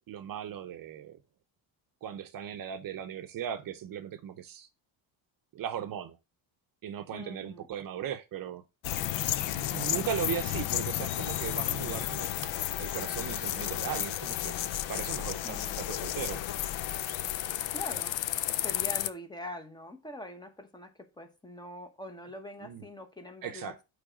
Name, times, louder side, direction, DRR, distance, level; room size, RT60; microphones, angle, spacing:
voice 1, 0.1-1.2 2.0-4.7 5.5-6.2 6.8-8.6 9.6-12.3 12.8-14.6 14.9-16.4 22.6-22.8 23.4-23.7, right 9 dB, 45° right, 0.7 m, -37 dB
voice 2, 7.1-7.7 15.4-15.9 17.7-18.2 18.6-23.8, left 1 dB, 10° left, 0.8 m, -43 dB
sound 1, 8.8-19.1, left 13 dB, 65° left, 0.6 m, -32 dB
8.5 x 3.4 x 4.9 m
cardioid pair, 165°, 48 cm